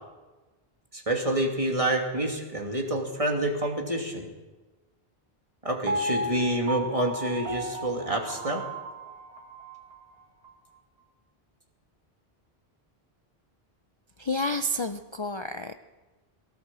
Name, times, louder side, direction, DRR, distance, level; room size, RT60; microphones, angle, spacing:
voice 1, 0.9-4.3 5.6-8.6, right 1 dB, 30° right, 2 dB, 2.8 m, -28 dB
Piano, 5.9-10.0 10.4-10.5, right 1 dB, 75° right, 1.8 m, -34 dB
voice 2, 14.2-15.7, left 1 dB, 30° left, 8 dB, 0.6 m, -30 dB
20.0 x 17.5 x 7.6 m, 1.2 s
omnidirectional pair, 1.1 m